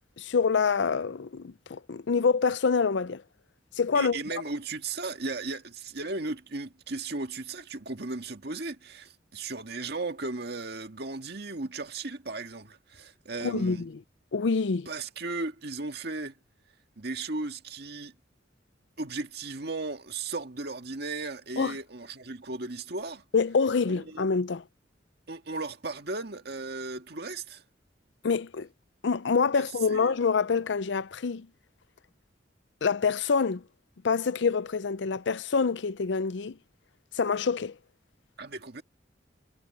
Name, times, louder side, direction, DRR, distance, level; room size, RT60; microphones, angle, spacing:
voice 1, 0.2-3.2 3.8-4.2 13.4-14.0 14.3-14.9 21.6-21.7 23.3-24.6 28.2-28.7 29.0-31.5 32.8-33.6 34.0-36.6 37.1-37.7, left 5 dB, 70° left, 0.5 m, -26 dB
voice 2, 3.9-13.9 14.9-16.4 17.0-18.1 19.0-23.2 23.9-24.3 25.3-27.6 29.5-30.1 38.4-38.8, right 3 dB, 60° right, 1.9 m, -36 dB
head